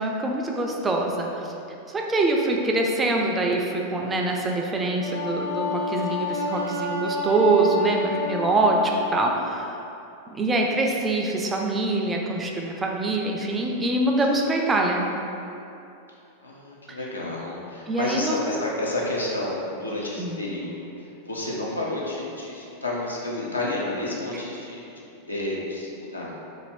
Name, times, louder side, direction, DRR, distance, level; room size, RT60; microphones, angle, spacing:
voice 1, 0.0-1.5 1.9-9.8 10.3-15.1 16.9-17.0 17.9-18.4 20.2-20.4 24.3-24.4, right 2 dB, 15° right, 0 dB, 0.3 m, -24 dB
Wind instrument woodwind instrument, 5.0-9.2, left 2 dB, 90° right, 0.5 m, -29 dB
voice 2, 16.4-20.9 21.2-24.8 25.3-26.3, left 2 dB, 80° left, -4 dB, 0.5 m, -30 dB
2.6 x 2.4 x 3.2 m, 2.8 s
figure-of-eight pair, 90°, 0 cm